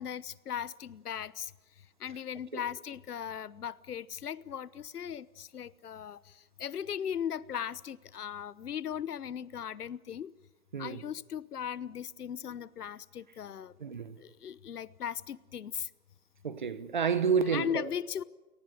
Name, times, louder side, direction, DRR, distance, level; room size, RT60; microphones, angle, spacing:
voice 1, 0.0-1.5 1.8-10.3 10.8-13.7 14.2-15.9 17.5-18.2, left 9 dB, 85° left, 1.1 m, -38 dB
voice 2, 13.8-14.2 16.4-17.9, right 6 dB, 30° right, 1.0 m, -30 dB
29.5 x 18.5 x 8.0 m
hypercardioid pair, 180°, 45 cm